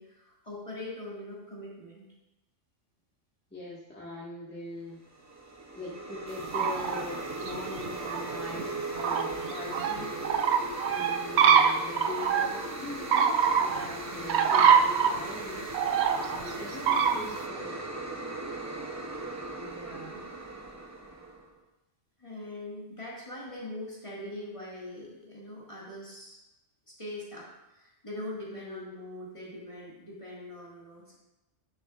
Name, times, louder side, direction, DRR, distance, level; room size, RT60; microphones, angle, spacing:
voice 1, 0.0-2.0 14.1-14.5 19.5-20.2 22.2-26.4 26.9-31.1, left 1 dB, 25° left, -6 dB, 1.9 m, -42 dB
voice 2, 3.5-5.0 5.7-17.9 28.5-28.9, left 2 dB, 10° left, -8 dB, 1.6 m, -42 dB
sound 1, 5.1-21.5, right 2 dB, 25° right, 0.4 m, -38 dB
sound 2, 6.4-7.0 7.3-12.7 13.1-13.9 14.3-15.2 15.7-16.5 16.9-17.4, right 7 dB, 65° right, 0.8 m, -24 dB
10.0 x 6.7 x 2.4 m, 0.99 s
omnidirectional pair, 1.3 m